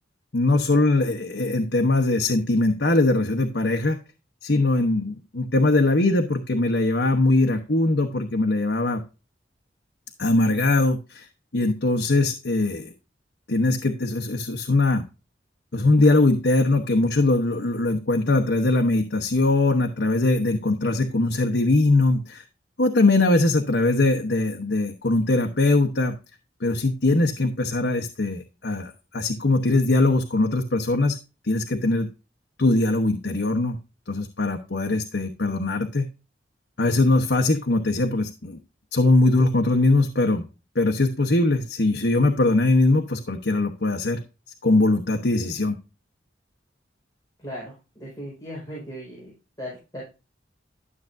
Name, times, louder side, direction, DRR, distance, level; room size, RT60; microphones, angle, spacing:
voice 1, 0.3-4.0 4.4-9.0 10.2-11.3 11.5-12.9 13.5-15.0 15.7-22.4 22.8-26.2 26.6-31.2 31.4-32.1 32.6-33.8 34.1-36.1 36.8-38.6 38.9-40.4 40.7-44.2 44.6-45.8, left 2 dB, 70° left, 4 dB, 1.1 m, -21 dB
voice 2, 47.4-50.0, equal, 20° left, -5 dB, 5.0 m, -38 dB
12.5 x 7.3 x 2.6 m, 0.30 s
head